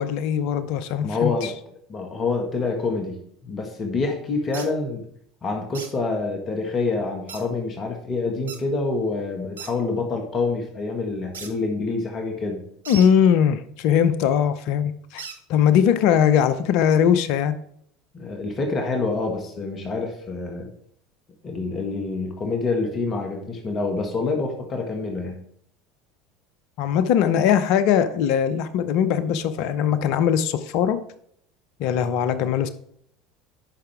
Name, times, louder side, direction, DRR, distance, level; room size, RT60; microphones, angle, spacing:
voice 1, 0.0-1.3 12.9-15.2 15.5-17.5 26.8-31.0 31.8-32.7, left 8 dB, 60° left, 13 dB, 0.7 m, -20 dB
voice 2, 1.0-1.5 1.9-3.2 3.4-5.0 5.4-12.6 18.1-20.7 21.4-25.3, left 3 dB, 35° left, 3 dB, 1.6 m, -27 dB
sound 1, 4.5-4.7 5.7-5.9 7.3-7.4 8.5-8.6 9.6-9.7 11.3-11.5 12.9-13.1 15.2-15.4, right 5 dB, 80° right, 0.8 m, -36 dB
10.0 x 5.7 x 3.5 m, 0.68 s
figure-of-eight pair, 70°, 0 cm